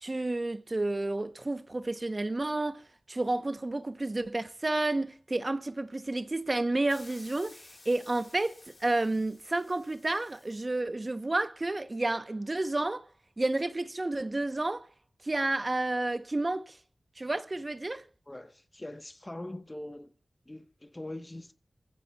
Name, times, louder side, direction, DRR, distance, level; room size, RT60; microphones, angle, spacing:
voice 1, 0.0-2.8 3.1-8.5 8.8-13.0 13.4-14.9 15.2-16.8 17.2-18.1, right 2 dB, 40° right, 0.8 m, -30 dB
sound 1, 6.9-10.7, left 2 dB, 50° left, 1.7 m, -55 dB
voice 2, 18.3-20.1 20.5-21.5, left 1 dB, 25° left, 1.0 m, -42 dB
28.0 x 15.0 x 2.3 m
wide cardioid pair, 55°, 0 cm